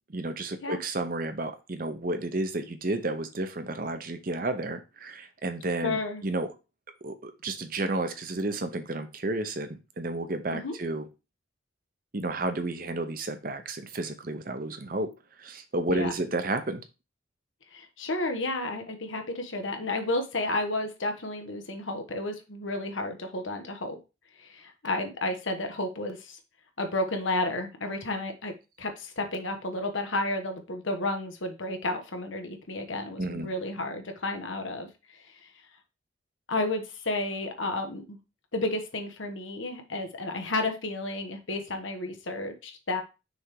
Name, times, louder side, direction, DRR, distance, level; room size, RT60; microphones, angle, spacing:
voice 1, 0.1-6.5 7.0-11.1 12.1-15.1 15.4-16.8 33.2-33.5, right 2 dB, 45° right, 8 dB, 0.8 m, -31 dB
voice 2, 5.8-6.2 10.5-10.7 15.9-16.1 17.7-24.0 24.4-26.4 26.8-28.5 28.8-35.5 36.5-38.2 38.5-43.0, left 2 dB, 85° left, 5 dB, 1.3 m, -32 dB
6.3 x 3.5 x 4.7 m, 0.28 s
head